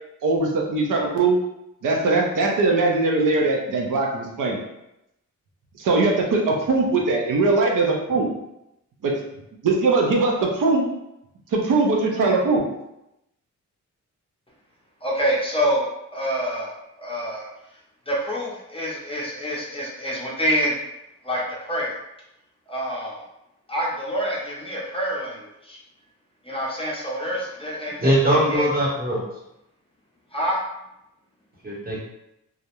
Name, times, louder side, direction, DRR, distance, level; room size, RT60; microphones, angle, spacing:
voice 1, 0.2-1.4 1.8-4.6 5.8-8.3 9.0-9.1 9.6-10.9 11.5-12.6, right 3 dB, 85° right, 0 dB, 0.6 m, -21 dB
voice 2, 15.0-17.5 18.1-20.8 21.2-22.0 22.7-23.2 23.7-25.8 26.4-28.7 30.3-30.6, equal, 20° left, -5 dB, 0.5 m, -27 dB
voice 3, 28.0-29.2 31.6-32.0, equal, 30° right, -4 dB, 0.8 m, -21 dB
2.4 x 2.0 x 2.9 m, 0.86 s
wide cardioid pair, 130°, 31 cm